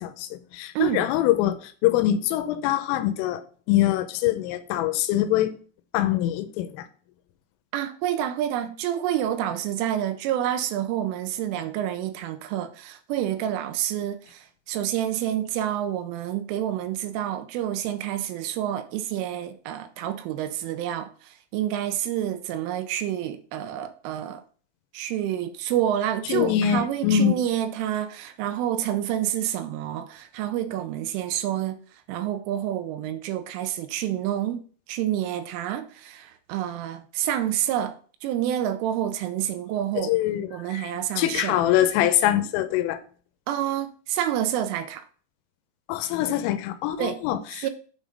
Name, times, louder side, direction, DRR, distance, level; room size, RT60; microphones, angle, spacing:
voice 1, 0.0-3.4 3.7-5.5 5.9-6.8 26.3-27.4 40.0-40.8 41.2-43.0 45.9-47.7, left 12 dB, 85° left, 3.1 m, -24 dB
voice 2, 0.8-1.1 7.7-24.4 24.9-31.8 32.1-34.6 34.9-38.0 38.2-40.1 40.5-41.6 43.5-45.0 47.0-47.2 47.6-47.7, right 11 dB, 80° right, 3.1 m, -28 dB
8.6 x 3.7 x 5.1 m
omnidirectional pair, 5.9 m